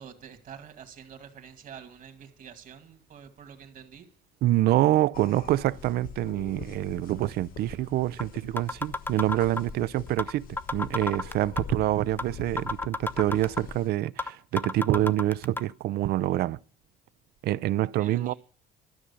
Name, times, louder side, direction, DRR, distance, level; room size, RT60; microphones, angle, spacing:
voice 1, 0.0-4.1 18.0-18.3, right 8 dB, 50° right, 2.1 m, -47 dB
voice 2, 4.4-16.6 17.4-18.3, right 14 dB, 70° right, 0.5 m, -26 dB
sound 1, 5.1-13.9, left 8 dB, 60° left, 1.1 m, -44 dB
sound 2, 7.7-7.8 8.2-8.3 8.6-9.7 10.2-10.3 10.6-11.7 12.2-12.3 12.6-13.7 14.2-14.3 14.6-15.6, left 3 dB, 10° left, 0.7 m, -30 dB
13.0 x 6.3 x 8.3 m
cardioid pair, 110°, 17 cm